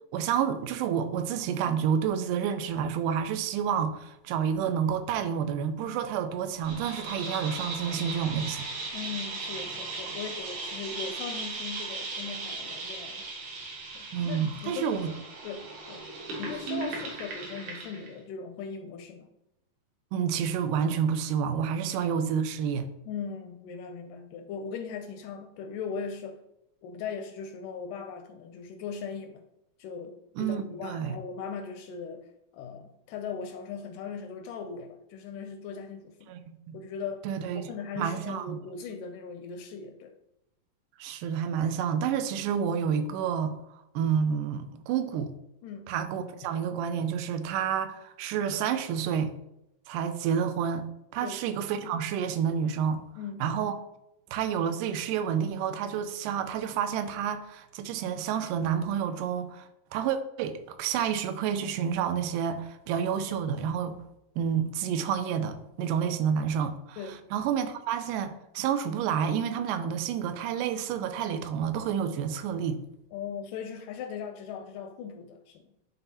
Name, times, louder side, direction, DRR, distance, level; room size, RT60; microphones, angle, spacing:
voice 1, 0.1-8.7 14.1-15.1 16.7-16.9 20.1-22.9 30.4-31.2 36.3-36.8 37.3-37.7 38.0-38.6 41.0-43.6 44.0-45.3 45.9-49.3 49.9-50.9 51.1-53.0 53.4-53.8 54.3-64.0 64.4-72.8, right 8 dB, 80° right, 2.0 m, -29 dB
sound 1, 6.6-18.1, right 3 dB, 65° right, 2.5 m, -38 dB
voice 2, 8.9-13.3 13.9-14.9 15.4-16.1 16.4-19.3 22.0-22.1 23.1-26.4 26.8-29.4 29.8-32.3 32.5-36.3 36.7-37.3 37.6-40.1 45.6-45.9 51.2-51.4 53.2-53.5 67.0-67.2 73.1-75.7, left 6 dB, 80° left, 1.9 m, -39 dB
11.0 x 3.9 x 2.8 m
omnidirectional pair, 4.0 m